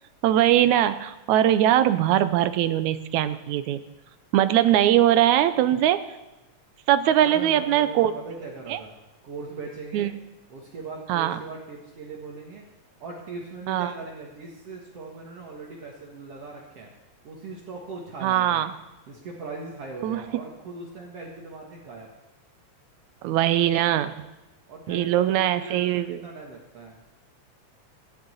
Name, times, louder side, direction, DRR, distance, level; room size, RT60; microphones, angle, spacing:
voice 1, 0.2-3.8 4.3-6.0 6.9-8.1 8.7-8.8 9.9-10.1 11.1-11.4 13.7-13.9 18.2-18.7 20.0-20.2 23.2-24.1 24.9-26.2, right 12 dB, 85° right, 12 dB, 2.1 m, -21 dB
voice 2, 7.2-9.0 9.2-10.1 10.5-12.7 13.0-16.9 17.2-18.6 19.1-22.1 24.7-27.0, right 3 dB, 55° right, -3 dB, 2.7 m, -39 dB
16.0 x 6.7 x 9.7 m, 1.0 s
omnidirectional pair, 3.3 m